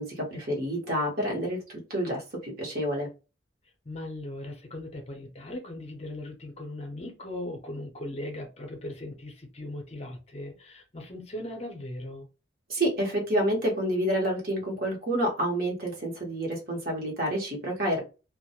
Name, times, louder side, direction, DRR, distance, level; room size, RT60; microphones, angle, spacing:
voice 1, 0.0-1.6 1.9-3.1 12.7-18.0, right 1 dB, 50° right, -1 dB, 0.9 m, -28 dB
voice 2, 3.8-12.3, left 1 dB, 35° left, 2 dB, 0.5 m, -38 dB
2.2 x 2.0 x 2.8 m, 0.31 s
head